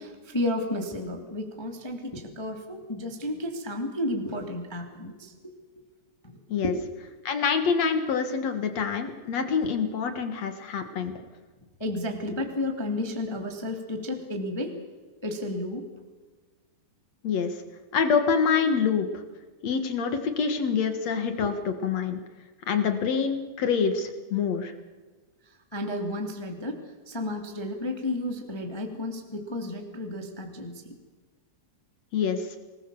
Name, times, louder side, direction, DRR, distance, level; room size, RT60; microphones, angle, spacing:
voice 1, 0.0-5.3 6.6-6.8 11.0-11.1 11.8-14.7 15.2-15.8 21.4-21.5 25.7-26.8 27.0-30.8, left 1 dB, 10° left, 3 dB, 1.5 m, -32 dB
voice 2, 7.2-11.1 17.2-17.6 17.9-19.1 19.6-22.2 22.7-24.7 32.1-32.6, left 6 dB, 60° left, 8 dB, 1.9 m, -26 dB
26.5 x 20.5 x 7.1 m, 1.3 s
omnidirectional pair, 5.3 m